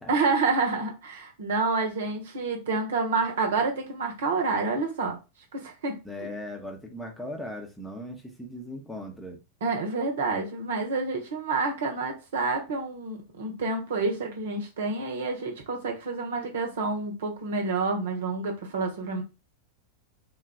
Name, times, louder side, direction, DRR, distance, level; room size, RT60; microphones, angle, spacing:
voice 1, 0.1-5.2 5.5-6.0 9.6-19.2, right 3 dB, 60° right, 0.9 m, -28 dB
voice 2, 6.0-9.4, left 1 dB, 5° left, 0.8 m, -38 dB
3.7 x 2.4 x 3.6 m
figure-of-eight pair, 90°, 0 cm